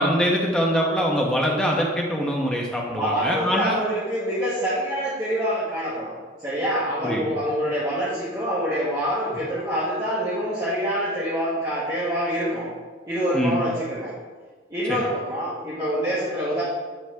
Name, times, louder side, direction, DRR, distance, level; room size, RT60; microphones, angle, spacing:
voice 1, 0.0-3.8 7.0-7.3 13.3-13.6, equal, 5° left, -2 dB, 0.7 m, -23 dB
voice 2, 2.9-12.7 13.0-14.1 14.7-16.6, equal, 20° right, -11 dB, 1.3 m, -26 dB
9.0 x 3.5 x 3.5 m, 1.4 s
head